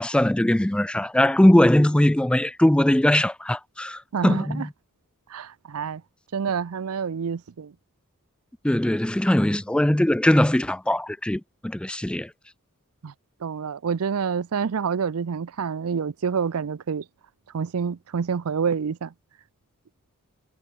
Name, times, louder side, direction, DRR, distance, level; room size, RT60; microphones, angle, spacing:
voice 1, 0.0-4.7 8.6-12.3, left 1 dB, 5° left, 0.3 m, -20 dB
voice 2, 4.1-4.7 5.3-6.0 6.3-7.7 13.0-13.1 13.4-17.0 17.5-19.1, right 6 dB, 75° right, 0.5 m, -27 dB
head